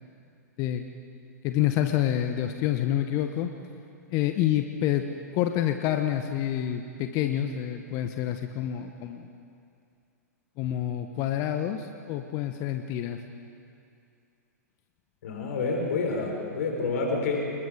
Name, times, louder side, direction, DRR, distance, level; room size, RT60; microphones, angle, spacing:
voice 1, 1.4-3.5 4.1-5.1 5.3-9.3 10.6-13.2, left 11 dB, 40° left, 6 dB, 1.1 m, -28 dB
voice 2, 15.2-17.5, left 3 dB, 60° left, 1 dB, 4.2 m, -28 dB
26.0 x 22.0 x 5.1 m, 2.5 s
figure-of-eight pair, 100°, 9 cm